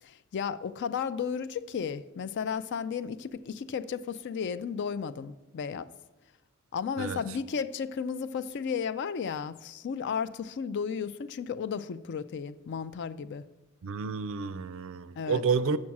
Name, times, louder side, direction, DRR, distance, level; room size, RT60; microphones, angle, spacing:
voice 1, 0.0-5.9 6.7-13.4 15.2-15.4, left 6 dB, 55° left, 0.4 m, -34 dB
voice 2, 13.8-15.8, right 5 dB, 65° right, 0.4 m, -30 dB
7.4 x 6.3 x 5.9 m
head